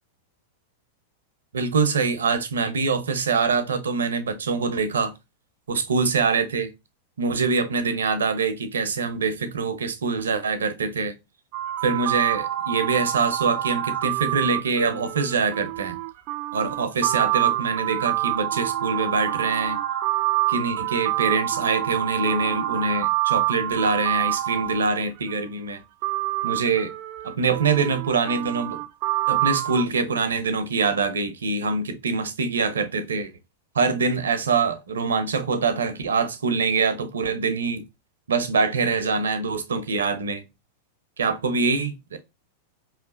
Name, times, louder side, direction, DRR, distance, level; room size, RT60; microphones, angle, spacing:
voice 1, 1.5-5.1 5.7-6.7 7.2-11.1 11.8-16.0 16.5-19.8 20.5-25.8 26.4-26.9 27.2-28.8 29.3-33.3 33.7-37.8 38.3-40.4 41.2-42.2, right 4 dB, 80° right, 0.8 m, -24 dB
sound 1, 11.5-25.3 26.0-29.8, right 15 dB, 50° right, 0.5 m, -27 dB
4.7 x 3.2 x 2.5 m
hypercardioid pair, 100°, 0 cm